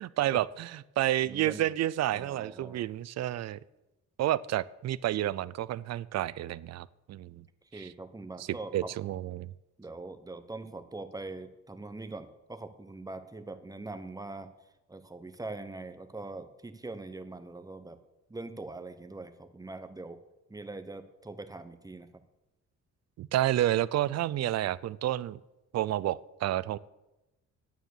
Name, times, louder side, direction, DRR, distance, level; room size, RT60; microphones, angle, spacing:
voice 1, 0.0-3.6 4.2-7.4 7.7-7.9 8.7-9.5 23.2-25.4 25.7-26.8, right 13 dB, 60° right, 20 dB, 0.5 m, -30 dB
voice 2, 1.2-1.6 2.1-2.8 7.7-8.9 9.8-14.5 14.9-18.0 18.3-20.2 20.5-22.1, right 2 dB, 10° right, 9 dB, 1.0 m, -42 dB
9.3 x 9.1 x 6.6 m, 0.99 s
cardioid pair, 90°, 30 cm